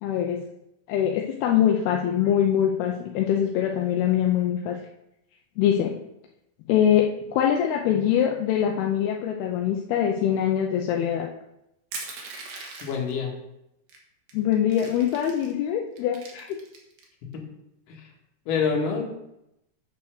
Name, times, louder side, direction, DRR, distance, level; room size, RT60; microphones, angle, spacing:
voice 1, 0.0-0.4 0.9-4.8 5.6-6.0 6.7-7.1 7.3-11.3 14.3-16.6, left 9 dB, 80° left, 1 dB, 2.7 m, -23 dB
Crushing, 11.9-13.1 13.9-14.0 14.3-15.5 16.0-17.0, right 4 dB, 70° right, 3.3 m, -39 dB
voice 2, 12.8-13.4 17.3-17.4 17.9-18.1 18.5-19.0, left 5 dB, 60° left, -1 dB, 3.2 m, -26 dB
9.2 x 5.6 x 6.5 m, 0.85 s
omnidirectional pair, 4.6 m